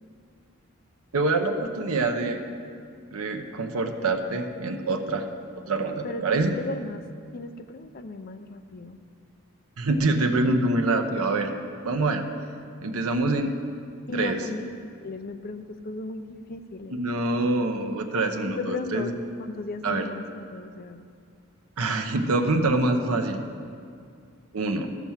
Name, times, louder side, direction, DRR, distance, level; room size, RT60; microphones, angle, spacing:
voice 1, 1.1-2.4 3.1-5.2 5.5-6.5 9.8-11.6 11.8-12.2 12.8-13.5 14.1-14.4 17.0-19.1 19.8-20.0 21.8-23.4 24.5-24.9, right 2 dB, 85° right, 5 dB, 0.8 m, -25 dB
voice 2, 6.0-7.0 7.3-9.0 14.1-17.0 18.4-19.1 19.4-21.0, left 2 dB, 40° left, 9 dB, 0.5 m, -35 dB
12.5 x 6.0 x 7.2 m, 2.3 s
head